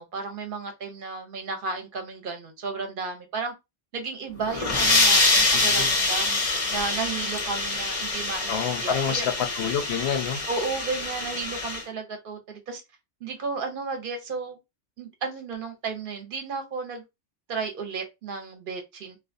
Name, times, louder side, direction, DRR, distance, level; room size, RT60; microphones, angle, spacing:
voice 1, 0.0-3.5 3.9-6.4 6.7-9.3 10.5-12.8 13.2-14.6 15.0-17.0 17.5-19.2, right 4 dB, 55° right, 0.8 m, -33 dB
sound 1, 4.4-11.8, left 2 dB, 40° left, 0.5 m, -25 dB
voice 2, 5.5-5.9 8.5-10.4, left 7 dB, 70° left, 0.8 m, -28 dB
2.5 x 2.3 x 2.5 m
omnidirectional pair, 1.2 m